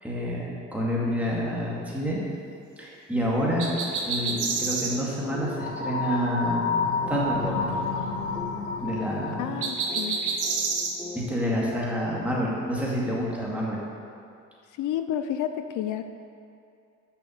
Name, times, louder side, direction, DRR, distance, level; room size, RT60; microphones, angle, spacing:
voice 1, 0.0-2.2 2.8-3.7 4.0-7.6 8.8-9.6 11.1-13.8, equal, 5° right, -5 dB, 2.2 m, -28 dB
sound 1, 3.4-12.7, left 3 dB, 20° left, 1.7 m, -42 dB
sound 2, 3.6-5.0 9.6-10.9, right 4 dB, 80° right, 1.1 m, -28 dB
sound 3, 5.5-9.5, left 4 dB, 60° left, 1.3 m, -29 dB
voice 2, 9.4-10.2 14.8-16.0, left 10 dB, 80° left, 9 dB, 0.5 m, -30 dB
6.7 x 6.1 x 6.6 m, 2.5 s
cardioid pair, 90°, 30 cm